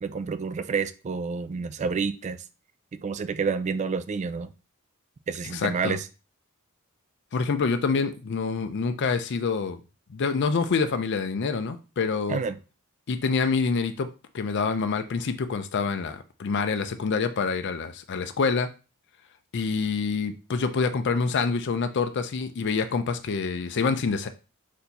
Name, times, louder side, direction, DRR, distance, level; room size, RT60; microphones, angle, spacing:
voice 1, 0.0-2.4 2.9-4.5 5.3-6.0 12.3-12.6, right 5 dB, 35° right, 0.3 m, -29 dB
voice 2, 5.5-6.0 7.3-9.8 10.1-12.4 13.1-14.1 14.3-18.7 19.5-24.3, left 5 dB, 55° left, 0.5 m, -26 dB
4.4 x 2.6 x 4.0 m
head